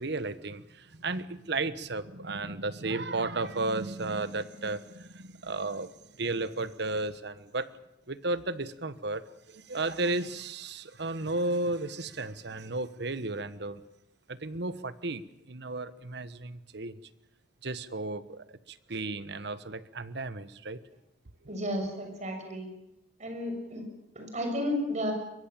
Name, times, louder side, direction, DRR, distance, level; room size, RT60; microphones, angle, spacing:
voice 1, 0.0-5.9 6.2-7.7 8.1-13.8 14.3-17.0 17.6-20.8 21.4-21.5, right 2 dB, 65° right, 14 dB, 1.3 m, -34 dB
voice 2, 21.5-22.7 23.2-23.9 24.1-25.1, equal, 40° right, 5 dB, 6.4 m, -32 dB
23.5 x 22.5 x 7.5 m, 0.86 s
head